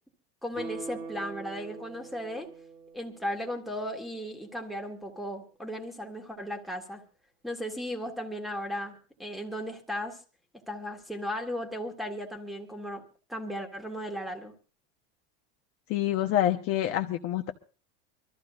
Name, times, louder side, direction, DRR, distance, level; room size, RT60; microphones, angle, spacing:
voice 1, 0.4-2.5 2.9-7.0 7.4-10.2 10.7-13.0 13.3-14.5, equal, ahead, 3 dB, 1.8 m, -36 dB
Guitar, 0.5-3.8 4.2-4.3, right 4 dB, 25° right, 1.8 m, -43 dB
voice 2, 15.9-17.5, left 12 dB, 40° left, 5 dB, 1.1 m, -27 dB
25.0 x 14.0 x 2.6 m, 0.34 s
cardioid pair, 160°, 34 cm